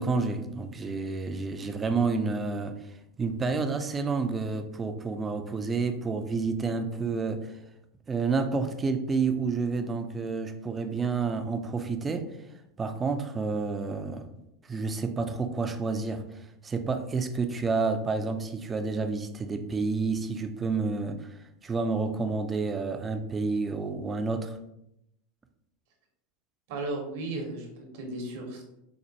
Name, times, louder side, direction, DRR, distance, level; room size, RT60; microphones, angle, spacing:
voice 1, 0.0-2.8 3.2-7.5 8.1-12.3 12.8-14.3 14.7-16.2 16.6-21.3 21.6-24.6, right 4 dB, 20° right, 7 dB, 0.4 m, -29 dB
voice 2, 26.7-28.6, right 2 dB, 65° right, 2 dB, 0.9 m, -35 dB
4.2 x 2.1 x 2.7 m, 0.82 s
hypercardioid pair, 100°, 0 cm